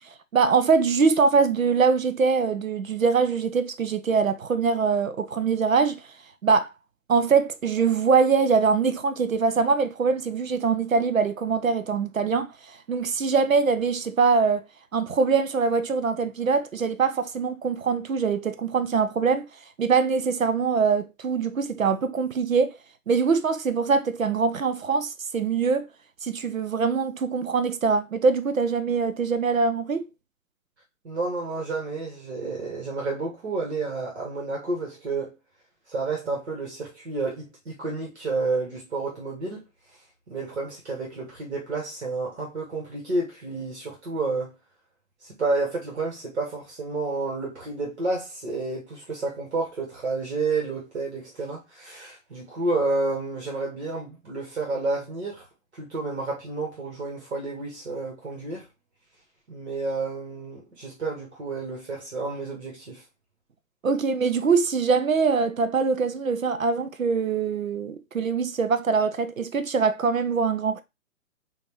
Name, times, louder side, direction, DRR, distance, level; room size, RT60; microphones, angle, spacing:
voice 1, 0.3-6.0 6.4-6.7 7.1-14.7 14.9-19.5 19.8-22.7 23.1-25.9 26.2-30.0 63.8-70.8, right 5 dB, 80° right, 0.6 m, -23 dB
voice 2, 31.0-35.3 35.9-39.7 40.3-44.5 45.2-55.5 55.7-58.7 59.5-63.0, right 3 dB, 55° right, 1.7 m, -30 dB
4.9 x 2.7 x 3.0 m
figure-of-eight pair, 125°, 40 cm